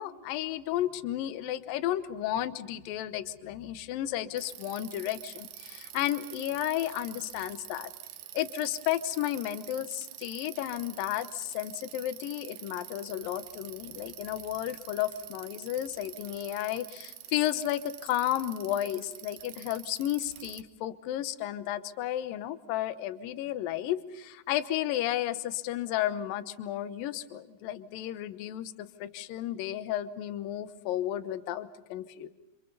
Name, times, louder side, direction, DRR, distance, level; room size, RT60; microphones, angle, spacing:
voice 1, 0.0-7.9 8.3-32.3, left 12 dB, 70° left, 12 dB, 2.5 m, -33 dB
Bicycle, 4.4-20.6, right 13 dB, 70° right, 2.1 m, -46 dB
29.0 x 27.0 x 5.4 m, 0.99 s
omnidirectional pair, 4.7 m